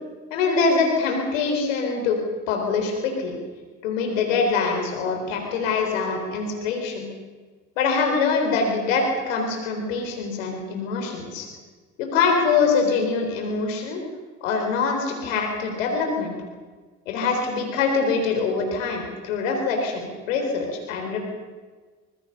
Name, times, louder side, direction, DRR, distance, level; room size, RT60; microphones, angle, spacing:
voice 1, 0.3-2.2 2.5-3.4 3.8-7.1 7.8-11.5 12.0-14.0 14.4-16.4 17.1-21.2, left 4 dB, 85° left, 3 dB, 4.1 m, -24 dB
24.5 x 20.5 x 6.8 m, 1.4 s
hypercardioid pair, 50°, 38 cm